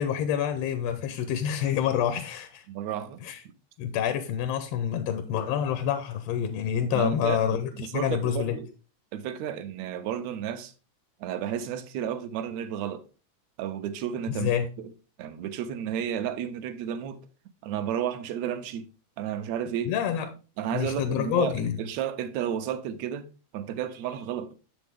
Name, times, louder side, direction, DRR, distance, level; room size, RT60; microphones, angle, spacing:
voice 1, 0.0-2.6 3.2-3.4 3.8-8.6 14.3-14.7 19.8-20.3 20.7-21.8, left 9 dB, 75° left, 1.5 m, -27 dB
voice 2, 2.7-3.2 6.9-8.7 9.1-10.7 11.2-13.0 13.6-14.5 15.2-17.2 17.6-18.9 19.2-19.9 20.6-23.3 23.5-24.6, right 9 dB, 80° right, 1.8 m, -32 dB
7.3 x 6.1 x 3.4 m
omnidirectional pair, 3.4 m